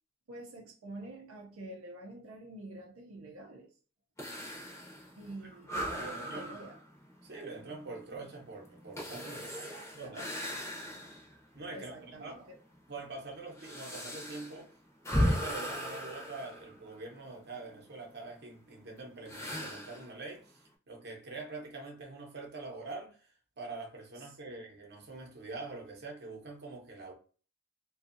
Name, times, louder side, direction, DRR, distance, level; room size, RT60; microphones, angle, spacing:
voice 1, 0.3-3.8 5.2-6.8 9.3-10.3 11.7-12.6, right 2 dB, 85° right, 0.5 m, -47 dB
sound 1, 4.2-11.4 11.8-11.9 12.7-17.3 19.3-20.1, equal, 15° left, 0.6 m, -37 dB
voice 2, 6.0-6.6 7.2-9.7 9.9-10.3 11.5-12.5 12.9-14.7 15.2-27.1, right 3 dB, 55° right, 0.8 m, -45 dB
2.5 x 2.2 x 2.5 m
head